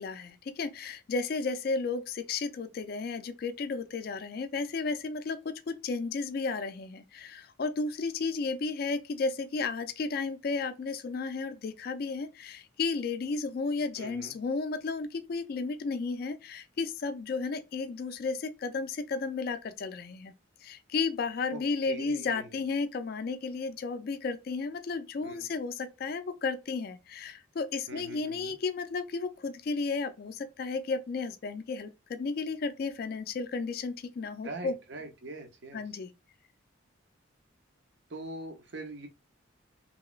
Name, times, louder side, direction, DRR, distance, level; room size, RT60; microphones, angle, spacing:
voice 1, 0.0-20.3 20.6-34.7 35.7-36.1, left 4 dB, 50° left, 0.3 m, -33 dB
voice 2, 14.0-14.3 21.5-22.5 25.2-25.5 27.9-28.5 34.4-35.8 38.1-39.1, right 2 dB, 60° right, 0.7 m, -43 dB
3.0 x 2.9 x 2.3 m
head